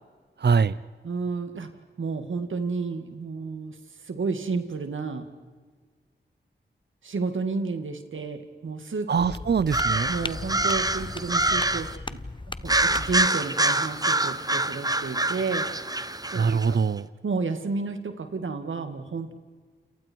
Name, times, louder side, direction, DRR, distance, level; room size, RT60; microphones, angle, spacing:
voice 1, 0.4-0.8 9.1-10.1 16.3-17.1, right 5 dB, 60° right, 18 dB, 0.7 m, -23 dB
voice 2, 1.0-1.7 2.0-3.8 4.0-5.3 7.0-9.1 10.1-12.2 12.6-15.7 16.3-16.8 17.2-19.3, right 4 dB, 85° right, 7 dB, 2.4 m, -31 dB
sound 1, 9.2-13.3, left 2 dB, 25° left, 0.9 m, -37 dB
sound 2, 9.7-12.0 12.7-16.7, right 2 dB, 20° right, 1.2 m, -26 dB
29.5 x 28.0 x 4.7 m, 1.5 s
cardioid pair, 50°, 20 cm